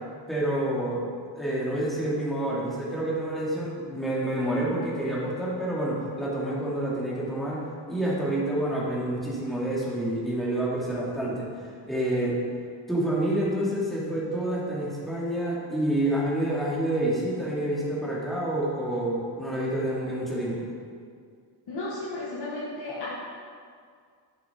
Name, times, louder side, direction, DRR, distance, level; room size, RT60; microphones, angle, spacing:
voice 1, 0.3-1.0 1.3-12.4 12.9-20.7, right 1 dB, ahead, -7 dB, 2.8 m, -28 dB
voice 2, 21.7-23.1, left 2 dB, 55° left, -8 dB, 2.1 m, -34 dB
10.5 x 7.8 x 4.6 m, 2.1 s
cardioid pair, 125°, 47 cm